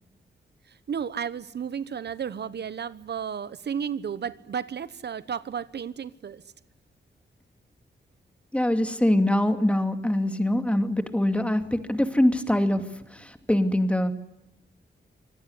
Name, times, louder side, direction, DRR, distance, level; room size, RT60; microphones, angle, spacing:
voice 1, 0.7-6.4, right 7 dB, 65° right, 16 dB, 1.0 m, -33 dB
voice 2, 8.5-12.8 13.1-14.1, left 1 dB, 5° left, 8 dB, 2.5 m, -23 dB
25.5 x 19.0 x 9.8 m, 0.89 s
wide cardioid pair, 100°, 19 cm